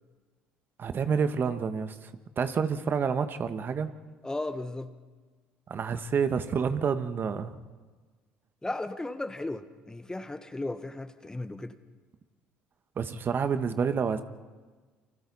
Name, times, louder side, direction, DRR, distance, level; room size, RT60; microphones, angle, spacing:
voice 1, 0.8-1.9 2.4-3.9 5.7-7.5 13.0-14.2, right 6 dB, 40° right, 9 dB, 1.5 m, -28 dB
voice 2, 4.2-4.9 8.6-11.7, left 2 dB, 15° left, 10 dB, 1.4 m, -35 dB
29.5 x 25.5 x 4.2 m, 1.4 s
hypercardioid pair, 60°, 5 cm